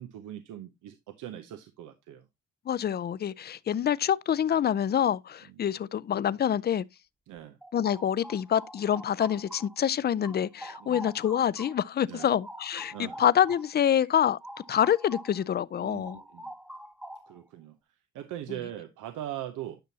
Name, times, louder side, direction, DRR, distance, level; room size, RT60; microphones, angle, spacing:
voice 1, 0.0-2.2 7.3-7.6 10.8-11.0 12.1-12.3 12.9-13.2 15.8-16.5 17.3-17.8 18.1-19.8, right 12 dB, 85° right, 0.8 m, -40 dB
voice 2, 2.7-6.8 7.7-14.4 14.7-16.2, left 9 dB, 35° left, 0.4 m, -26 dB
sound 1, 7.6-9.9 10.2-15.4 15.7-17.5, equal, 5° right, 0.9 m, -45 dB
10.5 x 6.0 x 2.8 m
cardioid pair, 90°, 30 cm